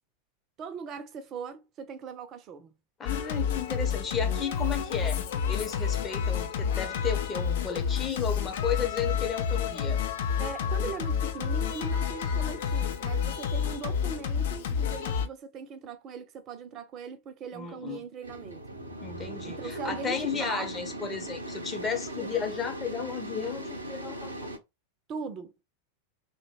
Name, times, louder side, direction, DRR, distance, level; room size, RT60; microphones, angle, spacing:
voice 1, 0.6-2.7 10.4-18.6 19.4-20.7 22.1-22.5 25.1-25.6, right 6 dB, 30° right, 0.5 m, -40 dB
voice 2, 3.0-5.2 5.5-10.0 17.5-18.0 19.0-24.5, left 6 dB, 20° left, 0.7 m, -33 dB
Singing, 3.1-15.3, left 7 dB, 55° left, 0.5 m, -29 dB
sound 1, 18.2-24.6, right 1 dB, 80° right, 0.6 m, -39 dB
2.5 x 2.2 x 3.0 m
figure-of-eight pair, 90°, 0 cm